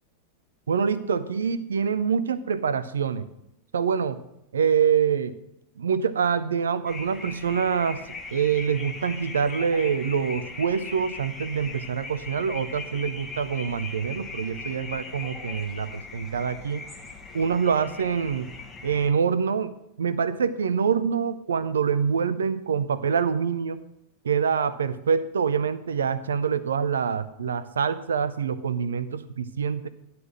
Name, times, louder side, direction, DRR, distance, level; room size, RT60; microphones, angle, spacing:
voice 1, 0.7-3.3 3.7-4.2 4.5-5.3 5.8-8.0 8.3-16.8 17.3-18.5 18.8-23.8 24.2-29.9, right 6 dB, 70° right, 14 dB, 0.5 m, -25 dB
sound 1, 6.9-19.1, left 4 dB, 15° left, 1.3 m, -39 dB
11.0 x 4.2 x 7.7 m, 0.81 s
figure-of-eight pair, 90°, 0 cm